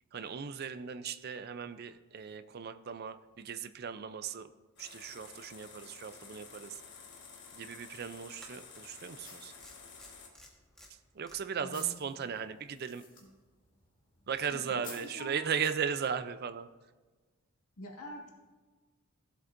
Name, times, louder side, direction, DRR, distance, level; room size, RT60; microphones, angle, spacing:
voice 1, 0.1-4.5 4.8-6.8 7.5-9.5 11.1-13.0 14.3-16.7, right 7 dB, 45° right, 11 dB, 0.4 m, -37 dB
sound 1, 4.8-10.3, left 5 dB, 50° left, 1.5 m, -52 dB
holga pinhole camera shutter, 7.0-7.1 8.4-8.9 9.6-11.3, left 1 dB, 5° left, 1.2 m, -55 dB
sound 2, 9.0-16.0, left 3 dB, 20° left, 2.2 m, -57 dB
voice 2, 11.6-11.9 14.5-15.5 17.8-18.3, equal, 85° left, -2 dB, 1.8 m, -45 dB
15.5 x 7.9 x 2.6 m, 1.3 s
head